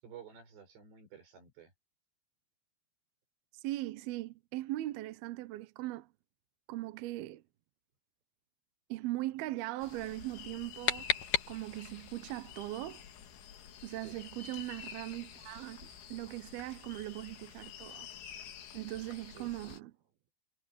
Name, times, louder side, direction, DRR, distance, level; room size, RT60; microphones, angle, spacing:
voice 1, 0.0-1.7 14.0-14.2 19.3-19.8, right 8 dB, 60° right, 8.3 m, -52 dB
voice 2, 3.6-6.1 6.7-7.4 8.9-11.1 11.5-13.0 13.8-18.1 18.7-19.9, right 17 dB, 75° right, 2.3 m, -39 dB
sound 1, 9.8-19.8, left 8 dB, 75° left, 4.9 m, -50 dB
sound 2, 10.4-12.0, left 9 dB, 60° left, 2.3 m, -34 dB
omnidirectional pair, 5.6 m